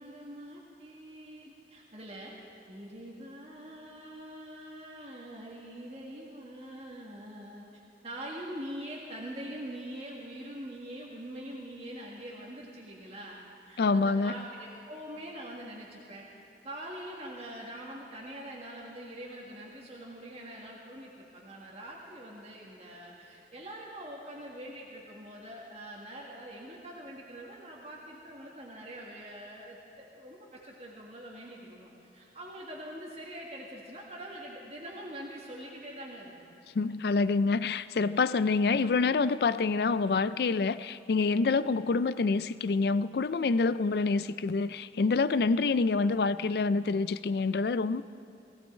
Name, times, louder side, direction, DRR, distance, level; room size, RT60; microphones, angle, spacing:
voice 1, 0.0-2.3 2.7-16.3 16.6-36.6, right 1 dB, 35° right, -4 dB, 1.8 m, -44 dB
voice 2, 13.8-14.4 36.7-48.0, left 4 dB, 60° left, 15 dB, 0.4 m, -27 dB
19.0 x 16.0 x 4.4 m, 2.9 s
head